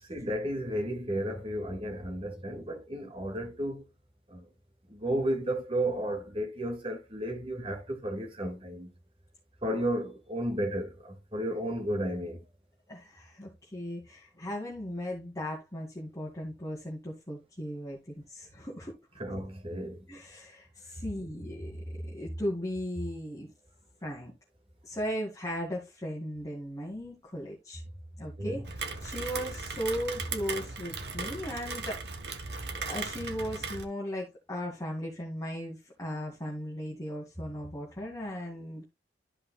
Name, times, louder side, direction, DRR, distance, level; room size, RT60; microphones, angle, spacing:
voice 1, 0.1-3.8 4.3-4.5 4.9-8.9 9.6-12.4 19.2-20.1 28.4-28.7, right 1 dB, 35° right, 2.0 m, -33 dB
voice 2, 12.9-18.0 18.3-18.9 20.1-23.5 24.0-24.3 24.8-27.8 28.2-32.0 32.9-38.8, equal, 20° left, 2.3 m, -37 dB
Rain, 28.6-33.8, right 4 dB, 70° right, 1.2 m, -37 dB
13.5 x 5.4 x 2.3 m
head